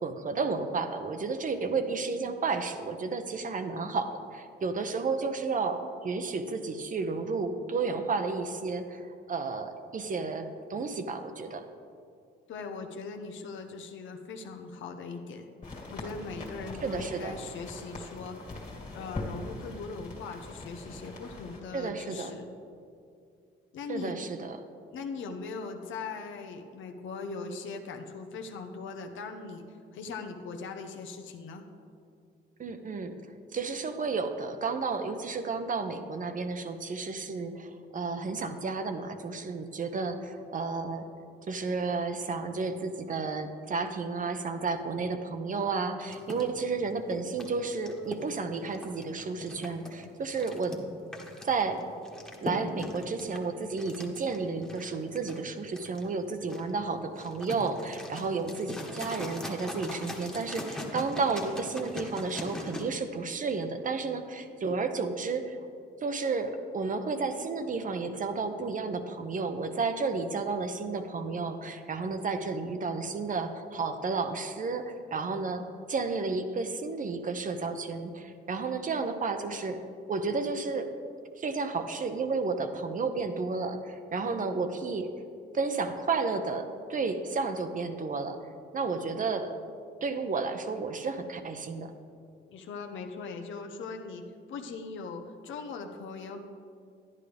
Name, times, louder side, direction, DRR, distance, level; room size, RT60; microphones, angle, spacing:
voice 1, 0.0-11.6 16.8-17.3 21.7-22.3 23.9-24.6 32.6-33.1 33.5-41.0 41.5-50.8 51.4-51.8 52.4-65.6 66.0-79.8 80.1-80.9 81.4-85.1 85.5-88.4 88.7-89.5 90.0-91.9, right 4 dB, 40° right, 8 dB, 0.8 m, -32 dB
voice 2, 12.5-15.5 15.9-18.6 18.9-22.5 23.7-24.1 24.9-29.6 29.9-31.6 58.2-58.4 84.2-84.3 92.5-94.2 94.5-96.4, left 4 dB, 75° left, 5 dB, 0.9 m, -40 dB
sound 1, 15.6-21.6, left 2 dB, 40° left, 2.2 m, -42 dB
sound 2, 46.1-62.8, left 1 dB, 5° left, 1.4 m, -41 dB
11.0 x 10.0 x 3.4 m, 2.4 s
cardioid pair, 90°, 20 cm